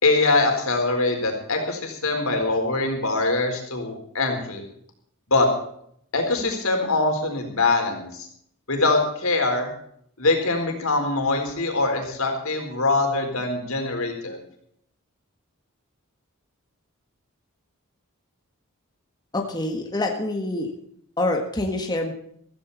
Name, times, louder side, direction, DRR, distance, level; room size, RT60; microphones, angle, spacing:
voice 1, 0.0-4.6 5.3-5.5 6.1-8.3 8.7-9.7 10.2-14.4, left 3 dB, 80° left, 3 dB, 4.3 m, -23 dB
voice 2, 19.3-20.7 21.2-22.1, left 2 dB, 20° left, 2 dB, 1.7 m, -26 dB
15.5 x 15.0 x 4.2 m, 0.67 s
head